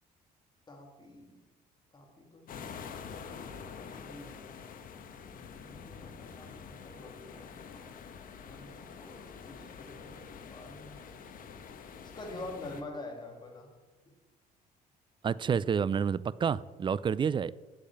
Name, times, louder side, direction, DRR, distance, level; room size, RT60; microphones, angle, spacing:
voice 1, 0.7-1.4 1.9-4.7 5.6-7.9 8.5-11.2 12.0-13.7 14.1-14.2, left 2 dB, 25° left, 1 dB, 2.9 m, -47 dB
sound 1, 2.5-12.8, left 6 dB, 55° left, 1.3 m, -46 dB
voice 2, 15.2-17.5, right 7 dB, 30° right, 19 dB, 0.4 m, -29 dB
8.5 x 7.6 x 8.6 m, 1.2 s
cardioid pair, 110°, 17 cm